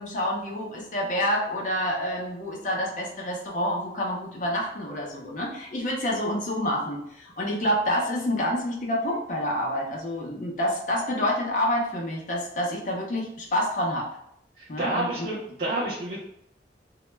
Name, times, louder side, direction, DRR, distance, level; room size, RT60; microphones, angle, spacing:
voice 1, 0.0-14.1 14.7-15.3, left 1 dB, 45° left, -1 dB, 0.5 m, -28 dB
voice 2, 14.8-16.2, right 2 dB, 55° right, -6 dB, 0.5 m, -29 dB
2.1 x 2.0 x 3.1 m, 0.72 s
head